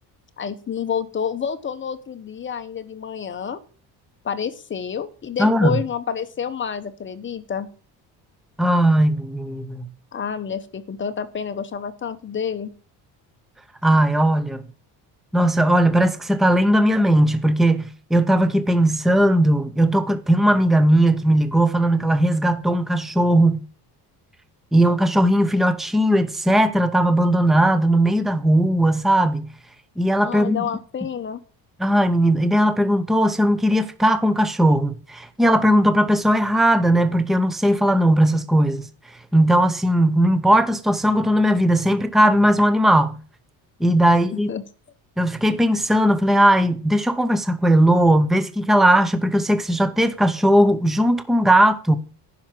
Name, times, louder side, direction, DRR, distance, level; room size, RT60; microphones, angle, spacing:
voice 1, 0.4-3.6 4.2-7.7 10.1-12.7 30.2-31.4 44.5-44.6, left 7 dB, 30° left, 1.0 m, -29 dB
voice 2, 5.4-5.8 8.6-9.9 13.8-14.6 15.3-23.6 24.7-29.5 30.0-30.6 31.8-38.9 39.3-43.2 43.8-44.5 45.2-52.0, right 1 dB, ahead, 0.7 m, -18 dB
10.5 x 5.7 x 7.6 m
cardioid pair, 140°, 40 cm